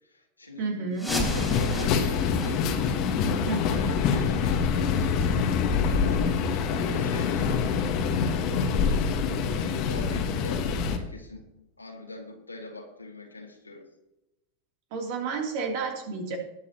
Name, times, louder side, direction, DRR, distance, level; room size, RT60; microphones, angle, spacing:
voice 1, 0.0-2.7 3.6-6.3 6.8-7.6 9.5-11.5 11.8-13.9, left 2 dB, 85° left, 0 dB, 2.1 m, -42 dB
voice 2, 0.6-1.1 3.4-3.9 14.9-16.4, right 4 dB, 45° right, 2 dB, 3.0 m, -31 dB
sound 1, 1.0-6.5 6.9-7.0 7.5-7.6 8.3-8.4 8.9-9.0, equal, ahead, 3.4 m, -37 dB
sound 2, 1.1-11.0, left 6 dB, 40° left, 1.5 m, -25 dB
19.5 x 8.2 x 3.0 m, 0.90 s
figure-of-eight pair, 90°, 0 cm